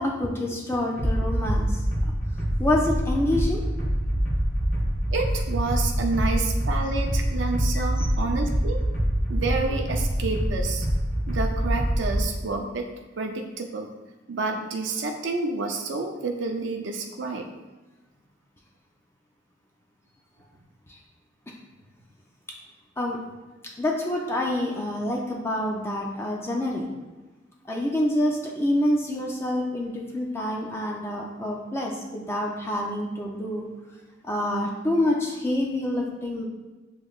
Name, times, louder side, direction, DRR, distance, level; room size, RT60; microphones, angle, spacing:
voice 1, 0.0-1.8 2.6-3.6 8.0-8.1 20.9-21.0 23.0-23.2 23.8-26.9 27.6-33.7 34.2-36.4, left 1 dB, 15° left, -1 dB, 0.5 m, -27 dB
sound 1, 1.0-12.2, equal, 45° left, 1.3 m, -25 dB
voice 2, 5.1-8.8 9.3-10.9 11.3-12.9 13.2-13.9 14.3-17.5, right 3 dB, 75° right, 2 dB, 0.5 m, -29 dB
7.0 x 3.1 x 2.4 m, 1.2 s
head